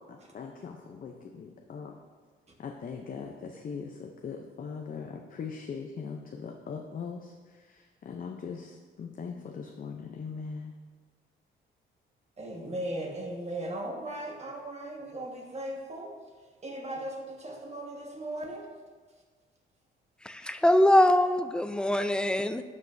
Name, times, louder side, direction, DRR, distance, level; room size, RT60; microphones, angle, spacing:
voice 1, 0.1-1.9 2.6-10.7, left 5 dB, 45° left, 2 dB, 0.7 m, -40 dB
voice 2, 12.4-18.7 20.4-20.6, right 1 dB, 35° right, 0 dB, 1.6 m, -38 dB
voice 3, 20.3-22.6, left 1 dB, 5° left, 9 dB, 0.4 m, -23 dB
12.0 x 5.3 x 2.7 m, 1.5 s
cardioid pair, 90°, 20 cm